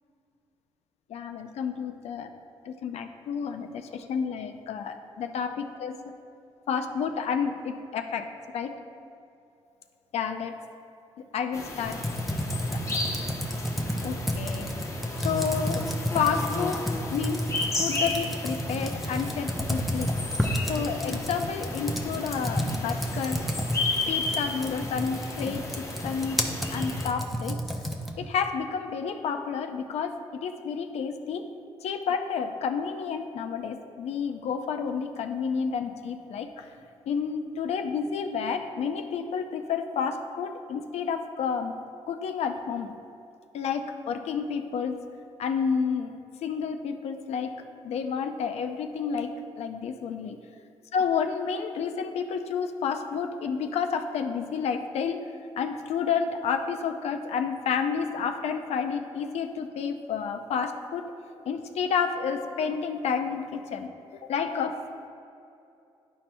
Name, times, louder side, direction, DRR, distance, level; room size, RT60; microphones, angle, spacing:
voice 1, 1.1-2.3 2.7-6.1 6.7-8.8 10.1-10.5 11.3-12.0 14.0-14.7 15.2-16.8 17.1-17.5 17.8-20.2 20.7-23.4 24.1-26.4 26.7-27.6 28.2-31.5 31.8-36.7 37.1-41.7 42.1-43.0 43.5-45.0 45.4-46.1 46.4-47.5 47.8-50.4 50.9-55.3 55.6-61.1 61.5-63.9 64.3-64.8, left 6 dB, 75° left, 6 dB, 0.5 m, -30 dB
sound 1, 11.5-27.1, left 2 dB, 25° left, 0.9 m, -34 dB
Computer keyboard, 11.8-28.3, equal, ahead, 0.7 m, -31 dB
11.0 x 4.3 x 2.2 m, 2.6 s
cardioid pair, 80°, 11 cm